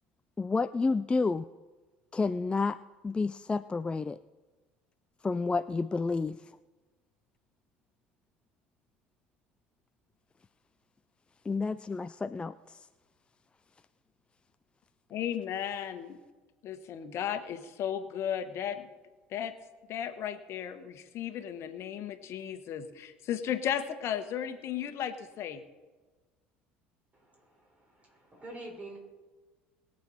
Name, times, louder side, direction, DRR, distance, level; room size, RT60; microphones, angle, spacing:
voice 1, 0.4-1.5 2.1-2.8 3.0-4.2 5.2-6.4 11.5-12.8, left 4 dB, 20° left, 12 dB, 0.4 m, -30 dB
voice 2, 15.1-16.2 16.6-18.9 19.3-19.5 19.9-25.6, left 9 dB, 55° left, 9 dB, 1.3 m, -35 dB
voice 3, 27.1-29.0, right 2 dB, 25° right, 0 dB, 5.3 m, -47 dB
21.5 x 7.8 x 4.3 m, 1.3 s
hypercardioid pair, 70°, 6 cm